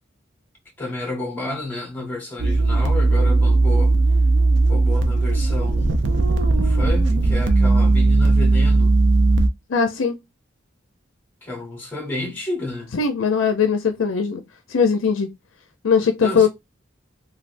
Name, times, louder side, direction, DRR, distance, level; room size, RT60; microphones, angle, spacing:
voice 1, 0.8-3.9 4.7-6.1 6.5-8.9 11.4-12.9 16.2-16.5, left 2 dB, 10° left, 1.0 m, -31 dB
sound 1, 2.4-9.5, right 2 dB, 65° right, 0.5 m, -17 dB
voice 2, 9.7-10.2 12.9-14.4 14.7-15.3 15.8-16.5, left 6 dB, 80° left, 0.5 m, -19 dB
3.3 x 2.3 x 2.5 m
head